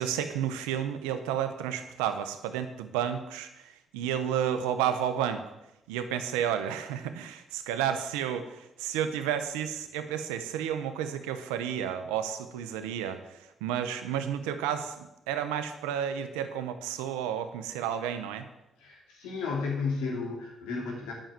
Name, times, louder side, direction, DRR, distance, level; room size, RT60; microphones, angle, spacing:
voice 1, 0.0-5.4 5.9-18.5, right 9 dB, 90° right, 9 dB, 0.9 m, -31 dB
voice 2, 18.8-21.1, left 4 dB, 85° left, -1 dB, 2.9 m, -33 dB
9.0 x 6.5 x 7.5 m, 0.91 s
hypercardioid pair, 50°, 0 cm